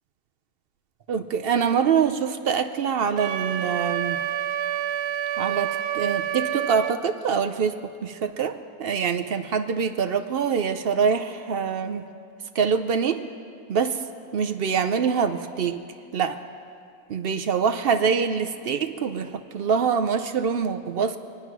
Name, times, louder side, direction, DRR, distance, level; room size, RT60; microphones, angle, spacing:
voice 1, 1.1-4.2 5.4-12.0 12.5-13.2 13.7-14.0 14.3-15.8 16.1-16.4 17.1-21.2, right 6 dB, 65° right, 8 dB, 0.6 m, -25 dB
Wind instrument woodwind instrument, 3.2-7.0, right 10 dB, 90° right, 1.2 m, -28 dB
25.0 x 9.4 x 6.0 m, 2.3 s
omnidirectional pair, 1.7 m